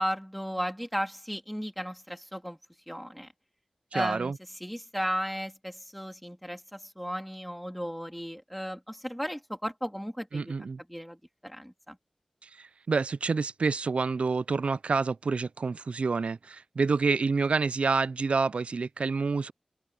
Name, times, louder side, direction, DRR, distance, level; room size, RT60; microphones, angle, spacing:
voice 1, 0.0-2.6 2.9-3.3 3.9-4.3 4.6-10.5 10.9-11.2 11.4-12.0, equal, ahead, 3.3 m, -35 dB
voice 2, 3.9-4.4 10.3-10.8 12.4-19.5, right 4 dB, 75° right, 0.3 m, -28 dB
wide cardioid pair, 65°, 2 cm